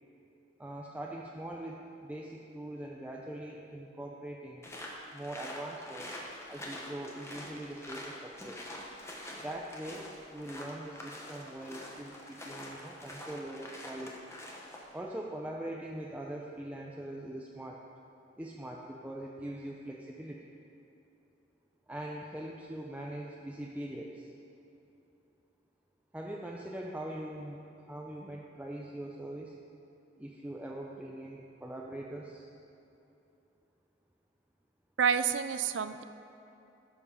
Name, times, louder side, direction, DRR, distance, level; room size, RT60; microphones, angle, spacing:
voice 1, 0.6-4.7 5.1-6.1 6.5-8.6 9.4-14.3 14.9-17.8 18.4-20.5 21.9-24.3 26.1-29.6 30.2-32.5, right 1 dB, 10° right, -2 dB, 0.5 m, -42 dB
sound 1, 4.6-14.9, left 1 dB, 15° left, 1.2 m, -45 dB
voice 2, 35.0-36.0, right 7 dB, 80° right, 12 dB, 0.4 m, -28 dB
12.5 x 7.0 x 5.0 m, 2.9 s
head